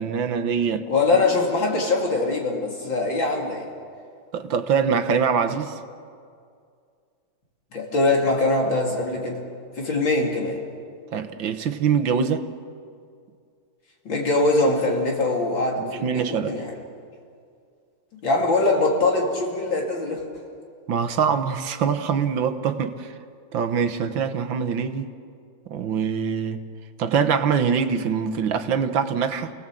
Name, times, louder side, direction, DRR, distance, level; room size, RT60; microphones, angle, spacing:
voice 1, 0.0-0.9 1.1-1.2 4.3-5.8 11.1-12.5 15.8-16.5 20.9-23.1 23.5-25.1 25.7-26.6 27.0-29.5, right 6 dB, 75° right, 9 dB, 1.8 m, -24 dB
voice 2, 0.9-3.7 7.7-9.4 9.8-10.6 14.1-16.7 18.2-20.2, left 2 dB, 70° left, -1 dB, 3.9 m, -22 dB
29.5 x 17.5 x 7.7 m, 2.3 s
omnidirectional pair, 2.1 m